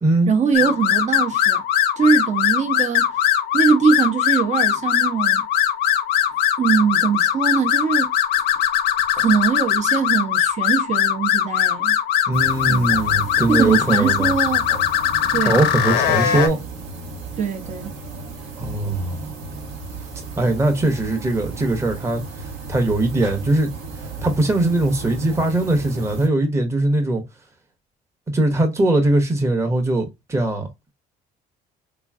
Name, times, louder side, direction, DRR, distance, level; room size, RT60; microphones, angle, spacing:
voice 1, 0.3-1.6 2.0-3.2 3.5-5.5 6.6-8.1 9.1-12.0 12.7-13.1 13.5-14.7 15.3-15.6 17.4-17.9, right 6 dB, 45° right, 1.0 m, -21 dB
sound 1, 0.5-16.5, left 10 dB, 80° left, 0.8 m, -20 dB
voice 2, 12.3-14.3 15.4-16.6 18.6-19.2 20.4-22.2 22.7-23.7 24.2-27.2 28.3-30.7, right 2 dB, 15° right, 1.0 m, -20 dB
sound 2, 12.3-26.3, right 3 dB, 90° right, 1.3 m, -34 dB
3.7 x 3.0 x 2.3 m
cardioid pair, 110°, 17 cm